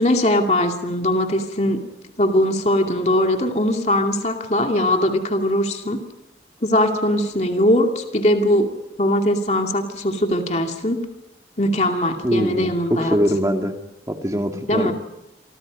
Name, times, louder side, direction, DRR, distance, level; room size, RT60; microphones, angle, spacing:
voice 1, 0.0-1.8 2.2-6.0 6.6-8.7 9.0-11.1 11.6-13.2 14.7-14.9, left 1 dB, 40° left, 4 dB, 2.5 m, -20 dB
voice 2, 12.2-13.7 14.1-14.9, equal, 20° right, 5 dB, 2.1 m, -22 dB
27.5 x 25.5 x 5.3 m, 0.93 s
head